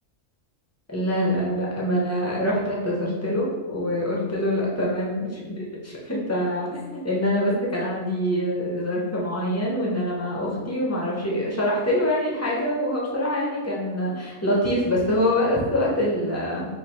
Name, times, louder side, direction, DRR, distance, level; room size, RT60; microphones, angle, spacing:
voice 1, 0.9-16.7, equal, 25° left, -5 dB, 0.3 m, -25 dB
3.2 x 2.4 x 4.3 m, 1.3 s
omnidirectional pair, 1.4 m